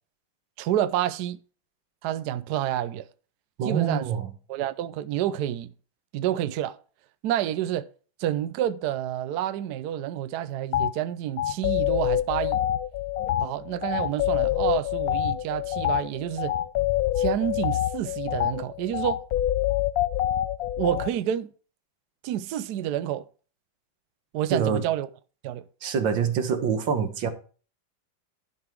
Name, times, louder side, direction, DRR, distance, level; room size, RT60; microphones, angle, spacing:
voice 1, 0.6-1.4 2.0-3.1 3.6-4.1 4.5-5.7 6.1-6.8 7.2-7.9 8.2-12.6 13.4-16.5 17.2-19.2 20.8-21.5 22.2-23.3 24.3-25.1 25.4-25.6, right 11 dB, 70° right, 1.0 m, -28 dB
voice 2, 3.6-4.3 24.5-24.8 25.8-27.3, right 7 dB, 90° right, 1.9 m, -25 dB
sound 1, 10.7-10.9 11.4-21.1, left 13 dB, 70° left, 0.9 m, -26 dB
11.5 x 5.5 x 4.5 m
omnidirectional pair, 2.0 m